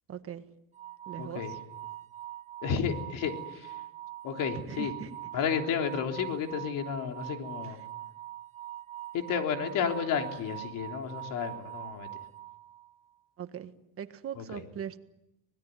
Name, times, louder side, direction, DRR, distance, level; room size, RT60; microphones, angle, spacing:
voice 1, 0.1-0.4 1.1-1.6 4.7-5.2 7.6-7.8 13.4-13.7 14.0-15.0, right 9 dB, 40° right, 9 dB, 1.6 m, -40 dB
sound 1, 0.7-13.0, right 13 dB, 20° right, 2.0 m, -43 dB
voice 2, 1.2-1.5 2.6-3.7 4.2-4.9 5.3-7.8 9.1-12.1 14.4-14.6, left 7 dB, 60° left, 4 dB, 3.6 m, -32 dB
25.0 x 19.5 x 9.4 m, 0.89 s
cardioid pair, 130°, 36 cm